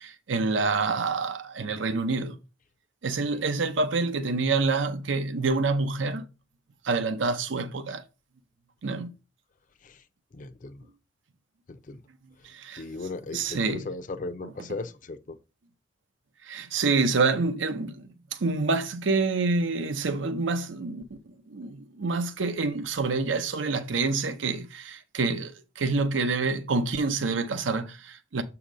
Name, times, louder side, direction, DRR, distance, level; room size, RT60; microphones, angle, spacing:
voice 1, 0.0-2.4 3.0-6.2 6.8-8.0 8.8-9.1 12.4-12.8 13.3-13.8 16.5-21.0 21.5-28.4, right 3 dB, 80° right, 0.6 m, -27 dB
voice 2, 10.3-10.8 11.7-12.0 12.8-15.4, left 3 dB, 45° left, 0.5 m, -37 dB
7.3 x 2.8 x 5.1 m
head